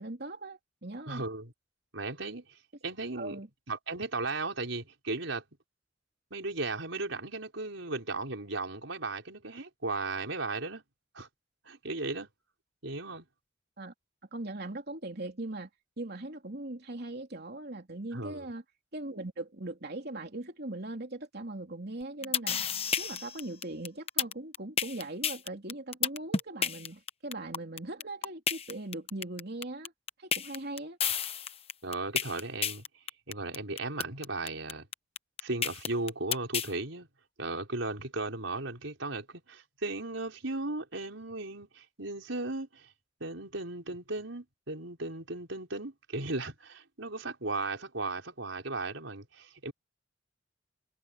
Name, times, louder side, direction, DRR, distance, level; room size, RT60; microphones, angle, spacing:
voice 1, 0.0-1.2 3.1-3.5 13.8-13.9 14.3-15.7 16.0-18.6 18.9-22.6 23.0-29.9 30.2-31.0, right 2 dB, 55° right, 3.1 m, -40 dB
voice 2, 1.1-1.5 1.9-2.4 2.8-3.4 3.7-5.4 6.3-10.8 11.1-11.3 11.6-12.3 12.8-13.2 18.1-18.5 31.8-32.8 33.3-34.9 35.4-37.1 37.4-42.9 43.2-49.7, right 2 dB, 80° right, 4.9 m, -36 dB
sound 1, 22.0-36.7, left 7 dB, 30° left, 1.0 m, -31 dB
head